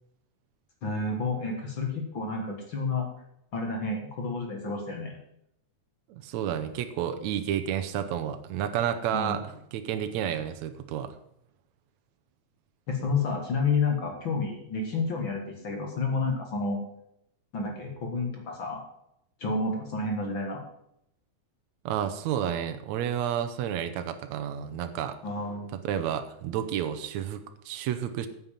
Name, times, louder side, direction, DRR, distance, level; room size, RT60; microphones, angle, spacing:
voice 1, 0.8-3.1 3.5-5.2 9.1-9.4 12.9-16.8 17.5-18.8 19.4-20.6 25.2-25.7, left 3 dB, 45° left, 2 dB, 2.3 m, -30 dB
voice 2, 6.1-9.4 9.7-11.1 21.9-25.2 25.8-28.3, right 9 dB, 75° right, 9 dB, 2.1 m, -30 dB
9.4 x 7.1 x 7.4 m, 0.76 s
omnidirectional pair, 3.4 m